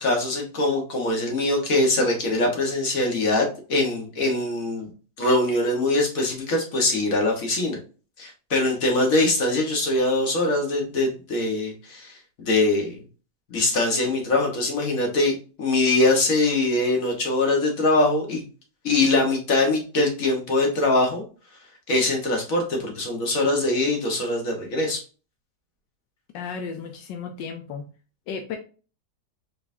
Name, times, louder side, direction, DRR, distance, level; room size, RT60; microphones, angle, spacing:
voice 1, 0.0-4.9 5.2-7.8 8.2-13.0 13.5-18.4 18.8-21.2 21.9-25.0, left 2 dB, 50° left, 1 dB, 1.8 m, -23 dB
voice 2, 26.3-27.9 28.3-28.6, left 6 dB, 85° left, 4 dB, 1.4 m, -34 dB
4.3 x 4.2 x 2.6 m, 0.36 s
omnidirectional pair, 1.9 m